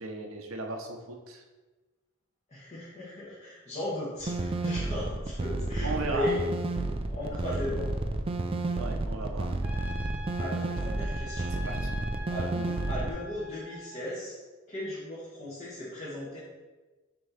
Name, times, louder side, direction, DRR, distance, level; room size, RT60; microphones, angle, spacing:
voice 1, 0.0-1.4 5.8-6.3 8.8-9.5 11.5-11.9 12.5-12.8, right 3 dB, 85° right, 3 dB, 0.9 m, -36 dB
voice 2, 2.5-6.4 7.0-7.9 10.4-11.5 12.2-12.5 12.9-14.3 14.7-16.4, left 1 dB, 35° left, -9 dB, 1.5 m, -36 dB
sound 1, 4.2-13.1, right 2 dB, 25° right, 0.4 m, -31 dB
Trumpet, 9.6-14.0, equal, 10° right, 0.8 m, -43 dB
6.2 x 3.1 x 5.8 m, 1.2 s
head